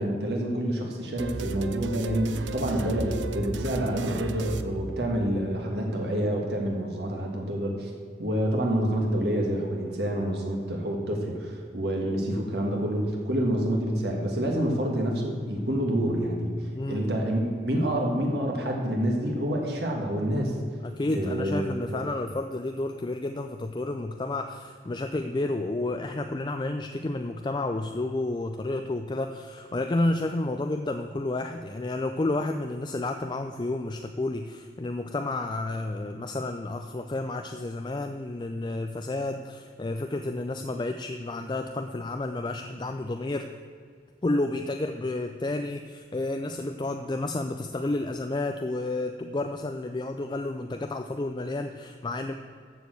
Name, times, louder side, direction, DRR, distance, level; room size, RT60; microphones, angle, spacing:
voice 1, 0.0-7.9 8.2-16.5 16.9-20.6 21.1-21.6 21.9-22.0, right 1 dB, 60° right, 0 dB, 1.6 m, -27 dB
sound 1, 1.2-5.5, right 3 dB, 85° right, 0.6 m, -35 dB
voice 2, 16.7-17.3 20.8-43.5 44.2-52.3, left 2 dB, 25° left, 6 dB, 0.4 m, -31 dB
14.0 x 4.7 x 7.8 m, 2.2 s
head